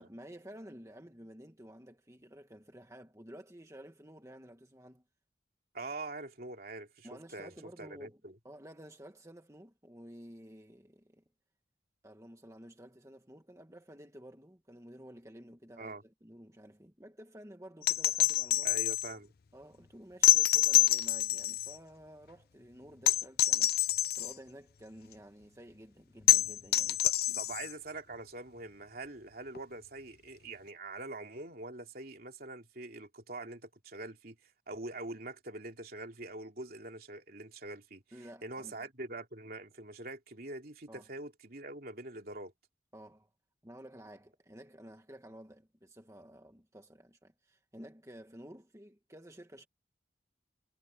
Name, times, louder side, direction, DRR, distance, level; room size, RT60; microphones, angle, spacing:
voice 1, 0.0-5.0 7.0-11.2 12.0-18.7 19.5-27.4 38.1-38.8 40.9-41.1 42.9-43.3 43.6-49.7, equal, 15° right, 1.7 m, -52 dB
voice 2, 5.7-8.4 15.8-16.0 18.6-19.3 27.0-42.5, right 2 dB, 55° right, 3.1 m, -44 dB
sound 1, 17.8-19.1 20.2-21.8 23.1-24.3 26.3-27.7 29.5-29.6, left 14 dB, 55° left, 0.5 m, -26 dB
head